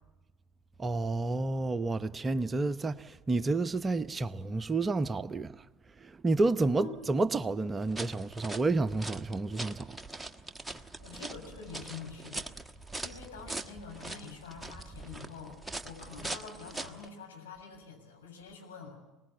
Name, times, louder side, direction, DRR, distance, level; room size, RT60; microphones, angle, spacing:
voice 1, 0.8-5.5 6.0-10.0, right 3 dB, 20° right, 0.9 m, -30 dB
sound 1, 7.8-17.1, right 2 dB, 5° right, 1.3 m, -42 dB
voice 2, 11.0-12.5 13.0-15.6 15.8-19.0, left 5 dB, 80° left, 7.4 m, -46 dB
23.0 x 20.0 x 8.4 m
hypercardioid pair, 70°, 0 cm